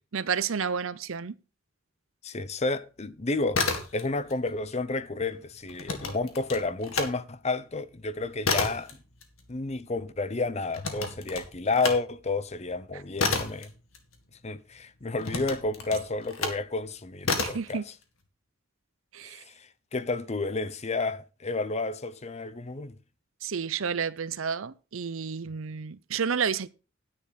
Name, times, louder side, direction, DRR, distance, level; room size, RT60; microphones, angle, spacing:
voice 1, 0.1-1.4 12.9-13.0 17.4-17.8 19.1-19.4 23.4-26.7, right 6 dB, 75° right, 0.6 m, -31 dB
voice 2, 2.2-3.6 3.9-9.0 9.5-13.7 14.4-17.8 19.2-22.9, left 3 dB, 30° left, 0.7 m, -31 dB
sound 1, 3.4-4.4 4.6-7.1 7.5-14.6 15.2-16.7 17.2-17.7, left 4 dB, 80° left, 2.0 m, -31 dB
10.0 x 9.8 x 4.0 m
head